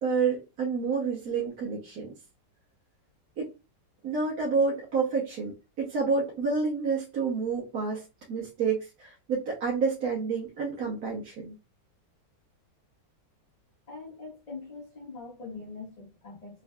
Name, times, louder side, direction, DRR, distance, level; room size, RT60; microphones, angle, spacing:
voice 1, 0.0-2.1 3.4-3.5 4.0-11.6, right 4 dB, 60° right, 1.4 m, -29 dB
voice 2, 13.9-16.6, left 4 dB, 25° left, 1.1 m, -43 dB
3.6 x 3.1 x 2.3 m
omnidirectional pair, 2.0 m